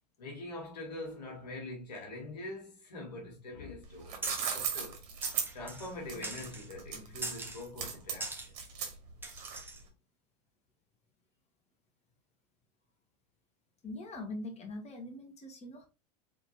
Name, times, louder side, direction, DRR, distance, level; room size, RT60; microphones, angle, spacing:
voice 1, 0.2-5.0 5.5-8.6, left 2 dB, 85° left, 2.1 m, -44 dB
sound 1, 3.8-9.8, right 7 dB, 65° right, 1.8 m, -37 dB
sound 2, 4.2-4.6 5.2-5.9 6.2-6.7 7.2-7.6 8.2-8.5 9.2-9.8, right 2 dB, 10° right, 1.3 m, -41 dB
voice 2, 13.8-15.8, left 2 dB, 30° left, 1.9 m, -42 dB
4.3 x 4.0 x 2.9 m
hypercardioid pair, 95°, 21 cm